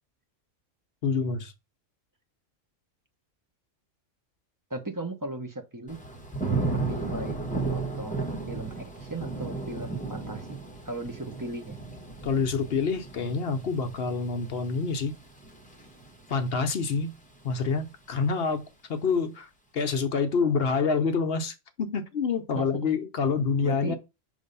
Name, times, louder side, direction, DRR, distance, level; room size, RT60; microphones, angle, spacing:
voice 1, 1.0-1.5 12.2-15.2 16.3-17.1 17.4-18.6 18.9-24.0, left 5 dB, 55° left, 0.9 m, -27 dB
voice 2, 4.7-6.0 6.7-7.4 7.6-11.8 22.5-22.7 23.6-23.9, right 2 dB, 20° right, 0.6 m, -37 dB
Thunder / Rain, 5.9-16.8 17.2-17.7, right 3 dB, 5° left, 1.1 m, -34 dB
5.4 x 3.3 x 5.2 m
omnidirectional pair, 1.3 m